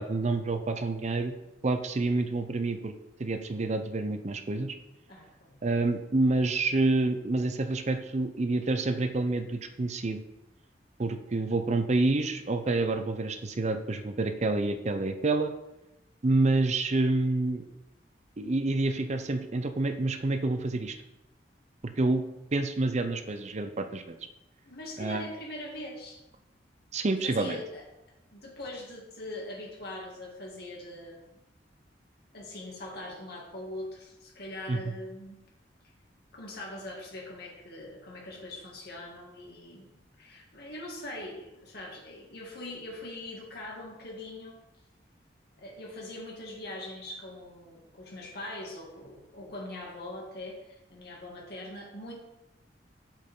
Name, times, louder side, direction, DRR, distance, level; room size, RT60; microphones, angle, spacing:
voice 1, 0.0-1.3 1.6-2.9 3.2-4.7 5.6-10.2 11.0-15.5 16.2-17.7 18.4-21.0 21.8-22.2 22.5-24.2 25.0-25.3 26.9-27.6 34.7-34.9, right 2 dB, 40° right, 8 dB, 0.6 m, -28 dB
voice 2, 5.1-5.6 24.6-26.2 27.2-27.8 28.3-31.4 32.3-35.4 36.3-39.9 40.2-44.6 45.6-52.1, left 1 dB, 60° left, -2 dB, 2.3 m, -42 dB
7.8 x 7.3 x 3.7 m, 0.93 s
head